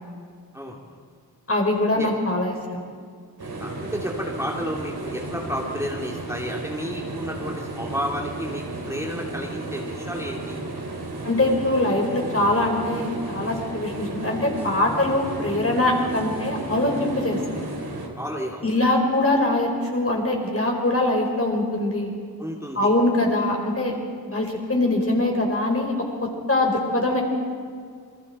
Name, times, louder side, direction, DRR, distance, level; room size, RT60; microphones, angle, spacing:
voice 1, 0.5-1.0 1.9-2.1 3.6-10.6 18.1-18.9 22.4-22.9, equal, 5° right, -2 dB, 2.7 m, -32 dB
voice 2, 1.5-2.8 11.2-17.4 18.6-22.1 22.7-24.0 24.3-27.2, left 2 dB, 35° left, 0 dB, 4.8 m, -23 dB
sound 1, 3.4-18.1, right 2 dB, 70° right, 3.2 m, -33 dB
28.0 x 20.5 x 4.4 m, 2.1 s
cardioid pair, 55°, 39 cm